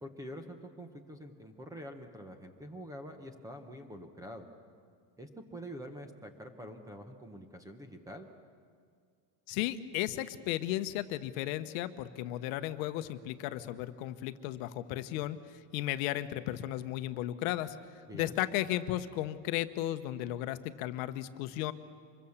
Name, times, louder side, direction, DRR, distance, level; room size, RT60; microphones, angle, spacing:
voice 1, 0.0-4.5 5.2-8.3 18.1-18.4, equal, 5° right, 7 dB, 0.8 m, -46 dB
voice 2, 9.5-15.4 15.7-17.8 18.1-21.7, left 14 dB, 55° left, 11 dB, 1.0 m, -34 dB
25.5 x 22.5 x 7.1 m, 2.1 s
cardioid pair, 175°, 49 cm